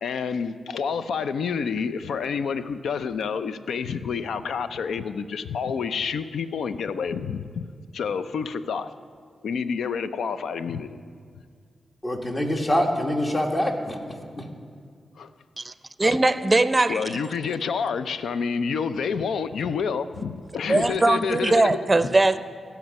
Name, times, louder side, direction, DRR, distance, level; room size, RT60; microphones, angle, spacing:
voice 1, 0.0-7.7 7.9-8.9 9.4-11.0 16.9-21.8 22.0-22.1, left 6 dB, 85° left, 12 dB, 0.4 m, -28 dB
voice 2, 12.0-14.5, left 1 dB, 30° left, 2 dB, 1.6 m, -25 dB
voice 3, 16.0-17.2 20.7-22.4, right 2 dB, 30° right, 12 dB, 0.5 m, -20 dB
16.0 x 6.0 x 5.3 m, 2.1 s
cardioid pair, 45°, 0 cm